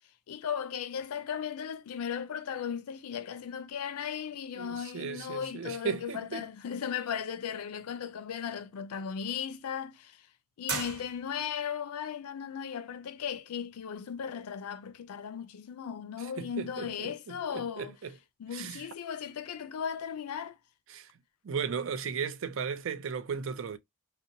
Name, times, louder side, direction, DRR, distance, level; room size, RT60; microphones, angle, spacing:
voice 1, 0.3-10.2 10.6-17.9 18.4-20.6, left 7 dB, 90° left, 0.4 m, -36 dB
voice 2, 4.6-6.5 16.4-18.1 18.5-18.8 20.9-21.1 21.4-23.8, right 6 dB, 60° right, 0.4 m, -36 dB
sound 1, 10.6-11.7, right 4 dB, 85° right, 1.1 m, -36 dB
2.8 x 2.1 x 2.5 m
head